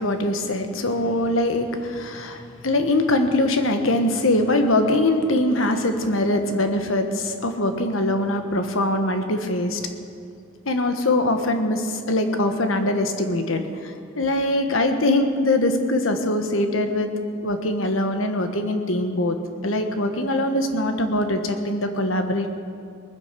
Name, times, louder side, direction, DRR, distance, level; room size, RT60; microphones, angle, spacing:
voice 1, 0.0-9.8 10.6-17.1 17.4-19.4 19.6-22.5, left 1 dB, 80° left, 7 dB, 1.4 m, -22 dB
19.5 x 10.5 x 6.9 m, 2.4 s
head